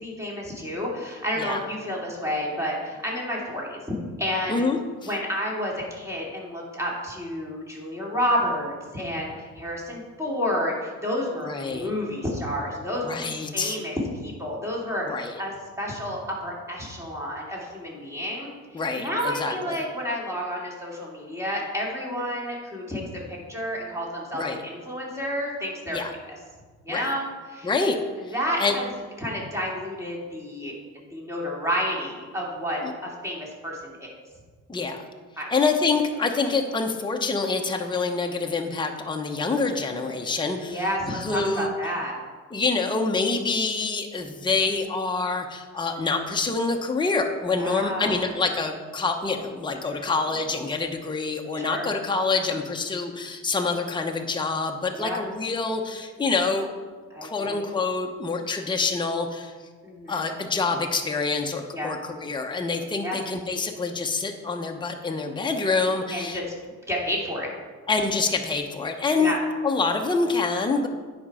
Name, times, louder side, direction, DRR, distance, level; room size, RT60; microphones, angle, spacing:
voice 1, 0.0-3.8 4.2-4.6 5.0-13.2 13.5-15.0 15.4-23.0 23.3-26.0 26.8-27.7 28.3-28.8 29.2-34.2 35.4-35.5 40.6-42.2 47.5-48.1 49.9-50.1 51.5-51.9 54.9-55.2 57.1-57.6 59.8-60.2 61.7-61.9 63.0-63.2 66.1-66.4 66.9-67.5 69.2-69.4, equal, 10° right, -4 dB, 2.8 m, -30 dB
voice 2, 4.5-5.1 11.5-11.9 13.0-13.8 15.0-15.4 18.7-19.8 24.3-24.6 25.9-26.1 26.9-27.1 27.6-28.0 28.6-28.7 32.8-32.9 34.7-35.1 35.5-41.7 42.5-56.7 57.2-59.5 60.1-66.4 67.9-69.3 69.6-70.9, left 4 dB, 15° left, 3 dB, 0.9 m, -26 dB
10.0 x 5.2 x 4.9 m, 1.4 s
cardioid pair, 90°, 30 cm